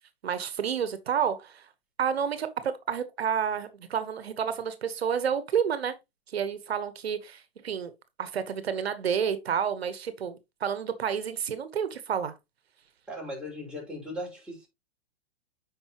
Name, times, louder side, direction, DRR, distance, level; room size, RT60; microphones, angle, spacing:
voice 1, 0.2-1.6 2.0-5.9 6.3-7.9 8.2-12.3, right 7 dB, 90° right, 1.2 m, -30 dB
voice 2, 13.1-14.7, equal, 5° right, 5.1 m, -38 dB
8.9 x 5.5 x 3.0 m
hypercardioid pair, 130°, 30 cm